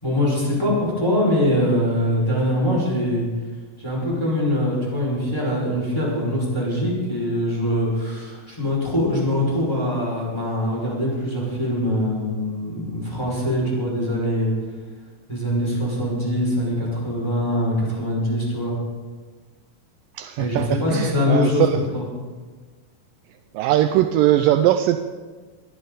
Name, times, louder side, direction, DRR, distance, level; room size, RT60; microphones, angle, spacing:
voice 1, 0.0-3.3 3.8-14.5 15.3-18.8 20.4-21.7 21.9-22.1, left 1 dB, 5° left, -5 dB, 5.5 m, -23 dB
voice 2, 20.2-21.8 23.5-25.0, right 13 dB, 80° right, 8 dB, 2.1 m, -20 dB
20.5 x 12.5 x 4.1 m, 1.4 s
omnidirectional pair, 4.1 m